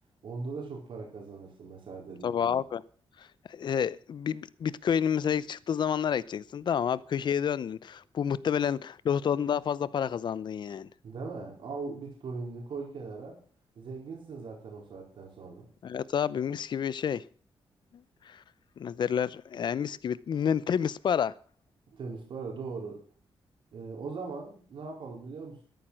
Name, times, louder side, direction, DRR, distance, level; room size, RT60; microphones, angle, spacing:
voice 1, 0.2-2.6 11.0-13.4 13.8-15.7 21.9-23.0 23.7-25.6, right 4 dB, 65° right, 4.3 m, -40 dB
voice 2, 2.2-2.8 3.2-10.9 15.8-17.2 18.2-18.4 18.8-21.3, left 8 dB, 55° left, 0.7 m, -29 dB
13.0 x 12.0 x 6.3 m
wide cardioid pair, 155°, 9 cm